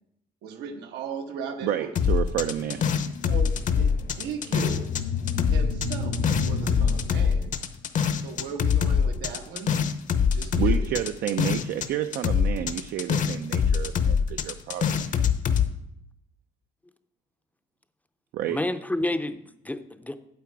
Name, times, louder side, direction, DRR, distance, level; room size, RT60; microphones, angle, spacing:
voice 1, 0.4-1.9 3.2-4.9 5.5-6.2 6.4-7.5 8.2-9.8 10.3-11.0, right 6 dB, 85° right, 5 dB, 1.3 m, -37 dB
voice 2, 1.6-2.9 10.5-15.3 18.3-18.6, right 11 dB, 70° right, 8 dB, 0.5 m, -30 dB
sound 1, 2.0-5.0 5.3-11.9 12.1-15.7, left 7 dB, 50° left, 0.8 m, -24 dB
sound 2, 2.5-7.7, left 4 dB, 75° left, 1.7 m, -32 dB
voice 3, 18.5-20.2, left 1 dB, 10° left, 10 dB, 0.5 m, -29 dB
8.7 x 8.4 x 4.7 m, 0.79 s
cardioid pair, 110°, 17 cm